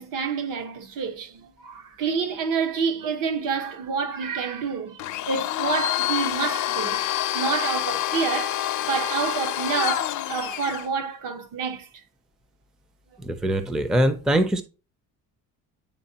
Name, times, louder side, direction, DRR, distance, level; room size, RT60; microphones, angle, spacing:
voice 1, 0.0-5.0 5.3-7.0 7.3-11.9, right 5 dB, 70° right, 1.1 m, -28 dB
Domestic sounds home sounds, 5.0-10.9, left 14 dB, 55° left, 0.5 m, -27 dB
voice 2, 13.2-14.6, right 1 dB, ahead, 0.4 m, -22 dB
9.8 x 3.6 x 2.8 m
cardioid pair, 150°, 35 cm